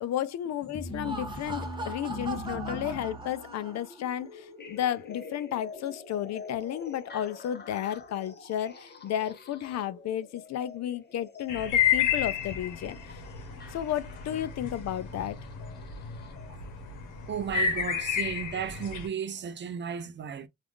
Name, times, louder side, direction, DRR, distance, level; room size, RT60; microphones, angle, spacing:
voice 1, 0.0-13.2 13.7-15.4, left 11 dB, 60° left, 0.5 m, -33 dB
sound 1, 0.6-16.5 17.7-17.8 18.6-18.7 19.4-19.5, left 2 dB, 35° left, 0.9 m, -44 dB
Laughter, 0.8-4.1, right 2 dB, 15° right, 0.8 m, -40 dB
sound 2, 11.5-19.1, left 8 dB, 85° left, 0.9 m, -31 dB
voice 2, 17.3-20.5, right 8 dB, 40° right, 0.4 m, -34 dB
3.4 x 2.4 x 2.4 m
cardioid pair, 90°, 30 cm